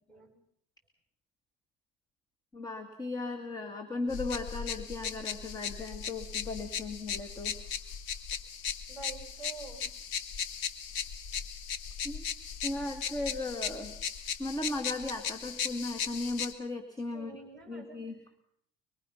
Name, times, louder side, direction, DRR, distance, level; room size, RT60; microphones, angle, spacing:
voice 1, 2.5-7.6 12.0-12.2 12.6-13.9 14.4-17.4 17.7-18.2, left 2 dB, 20° left, 7 dB, 2.1 m, -36 dB
sound 1, 4.1-16.5, left 7 dB, 80° left, 1.8 m, -37 dB
voice 2, 8.9-9.9 17.1-18.0, right 5 dB, 5° left, 3 dB, 7.0 m, -47 dB
24.5 x 24.0 x 5.8 m, 0.68 s
cardioid pair, 125°, 19 cm